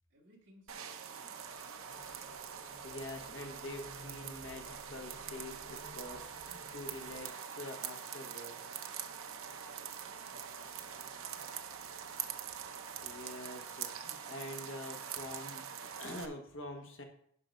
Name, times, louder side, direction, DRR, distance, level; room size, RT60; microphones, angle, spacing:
voice 1, 0.1-2.2 9.7-12.1, equal, 60° right, -3 dB, 2.6 m, -66 dB
sound 1, 0.7-16.3, right 8 dB, 85° right, 0.8 m, -44 dB
sound 2, 1.9-7.2, equal, 90° left, 2.4 m, -55 dB
voice 2, 2.8-8.6 13.0-17.0, left 2 dB, 65° left, 2 dB, 1.4 m, -46 dB
11.0 x 3.9 x 5.3 m, 0.64 s
head